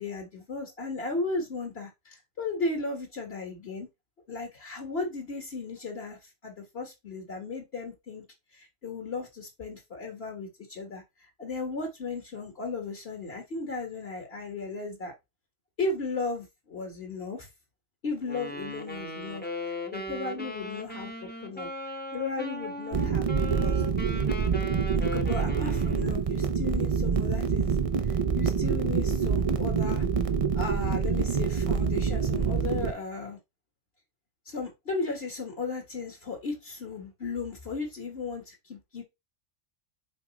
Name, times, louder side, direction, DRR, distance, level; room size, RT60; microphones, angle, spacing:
voice 1, 0.0-3.9 4.3-8.2 8.5-11.0 11.4-15.1 15.8-17.5 18.0-21.7 22.1-23.8 24.9-27.8 28.1-30.1 30.5-33.4 34.4-39.0, left 3 dB, 50° left, 1.7 m, -35 dB
Wind instrument woodwind instrument, 18.2-26.2, left 1 dB, 10° left, 0.9 m, -38 dB
sound 1, 22.9-32.9, right 6 dB, 40° right, 0.5 m, -26 dB
5.4 x 5.0 x 4.1 m
omnidirectional pair, 1.4 m